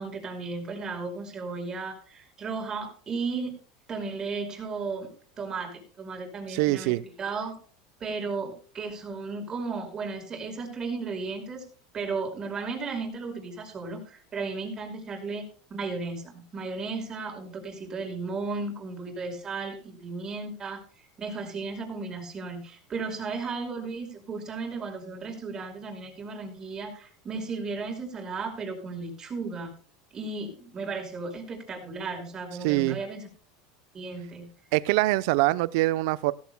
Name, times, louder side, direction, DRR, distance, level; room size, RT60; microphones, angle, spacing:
voice 1, 0.0-3.5 3.9-5.1 5.4-7.5 8.0-11.6 11.9-15.4 15.7-29.7 30.1-33.3 33.9-34.5, right 4 dB, 30° right, 4 dB, 5.1 m, -35 dB
voice 2, 6.5-7.0 32.6-33.0 34.7-36.3, right 19 dB, 70° right, 17 dB, 0.6 m, -24 dB
16.5 x 14.5 x 2.2 m, 0.42 s
supercardioid pair, 105°, 2 cm